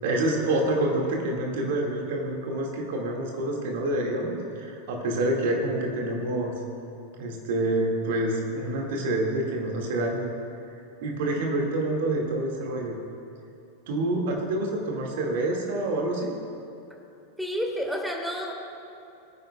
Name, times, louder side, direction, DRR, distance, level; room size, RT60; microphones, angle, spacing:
voice 1, 0.0-6.5 7.2-10.3 11.0-13.0 13.9-16.3, right 1 dB, 50° right, 0 dB, 2.0 m, -27 dB
voice 2, 17.4-18.5, equal, ahead, 1 dB, 1.6 m, -30 dB
21.5 x 9.5 x 2.3 m, 2.8 s
figure-of-eight pair, 90°, 0 cm